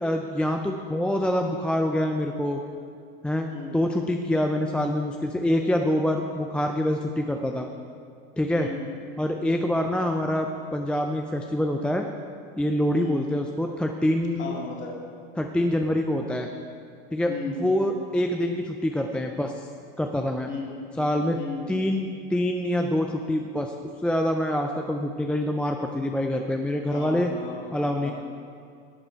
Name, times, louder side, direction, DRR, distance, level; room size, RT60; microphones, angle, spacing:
voice 1, 0.0-2.6 3.2-7.7 8.4-8.7 9.2-12.1 12.6-14.6 15.4-16.5 17.1-19.7 20.0-20.5 21.0-21.4 21.7-23.7 24.0-27.3 27.7-28.1, left 1 dB, 5° left, 3 dB, 0.4 m, -25 dB
voice 2, 14.4-14.9 17.3-17.6 20.5-20.8 21.4-21.7 26.9-27.6 28.0-28.1, left 4 dB, 35° left, -2 dB, 2.4 m, -35 dB
12.0 x 7.7 x 4.6 m, 2.4 s
supercardioid pair, 110°, 31 cm